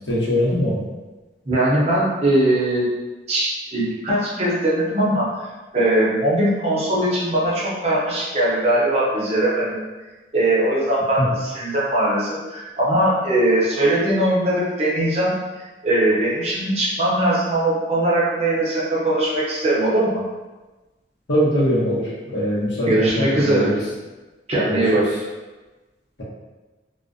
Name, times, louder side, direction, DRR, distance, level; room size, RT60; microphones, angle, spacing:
voice 1, 0.1-0.8 11.2-11.3 21.3-23.8 24.7-24.9, equal, 85° left, -7 dB, 0.9 m, -21 dB
voice 2, 1.5-2.9 3.3-5.5 5.7-9.8 10.3-20.2 22.8-23.7 24.5-25.1, right 1 dB, 35° right, -7 dB, 0.7 m, -20 dB
2.3 x 2.1 x 2.5 m, 1.2 s
head